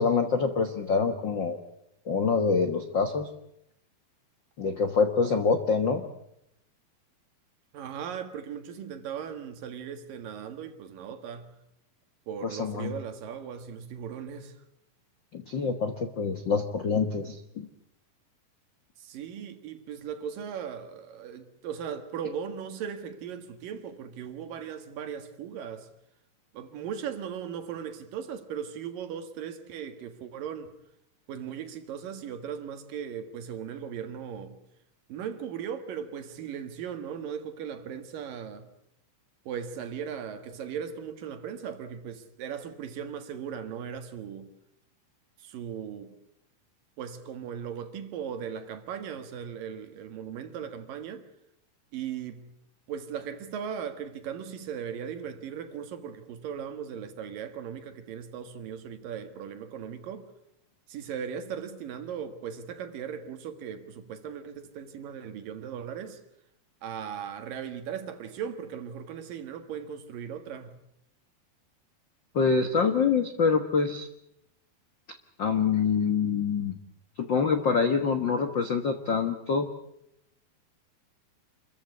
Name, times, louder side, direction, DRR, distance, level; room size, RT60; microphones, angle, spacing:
voice 1, 0.0-1.6 2.0-3.3 4.6-6.0 12.4-12.9 15.3-17.7 72.3-74.1 75.4-76.7 77.2-79.7, left 5 dB, 75° left, 1.0 m, -25 dB
voice 2, 7.7-11.5 12.3-14.5 19.0-25.9 26.5-30.7 31.3-34.6 35.1-38.7 39.5-44.5 45.4-46.1 47.0-51.2 51.9-52.5 52.9-60.3 60.9-66.2 66.8-70.8, right 8 dB, 65° right, 3.2 m, -38 dB
27.5 x 14.5 x 9.7 m
omnidirectional pair, 4.4 m